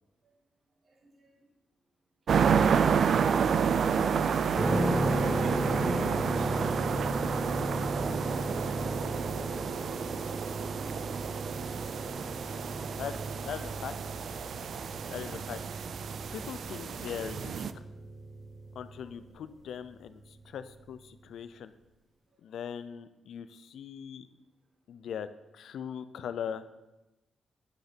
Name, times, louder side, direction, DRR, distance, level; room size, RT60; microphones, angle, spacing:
voice 1, 0.8-1.3 2.6-3.5 3.8-7.0 19.0-19.1, right 2 dB, 50° right, -1 dB, 1.8 m, -46 dB
sound 1, 2.3-17.7, right 7 dB, 65° right, 0.3 m, -30 dB
sound 2, 4.5-19.2, right 1 dB, 35° right, 2.1 m, -35 dB
voice 2, 13.4-13.9 15.1-15.6 16.3-17.6 18.8-21.7 22.4-24.3 24.9-25.3 25.5-26.6, left 8 dB, 85° left, 12 dB, 0.5 m, -40 dB
9.2 x 6.5 x 4.3 m, 1.0 s
cardioid pair, 105°, 0 cm